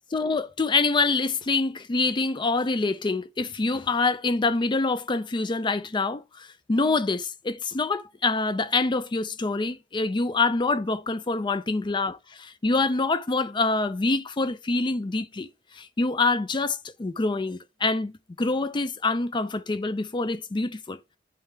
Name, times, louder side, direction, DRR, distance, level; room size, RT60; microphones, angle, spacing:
voice 1, 0.1-15.5 15.8-21.0, left 3 dB, 25° left, 0.4 m, -26 dB
9.1 x 3.2 x 3.3 m
head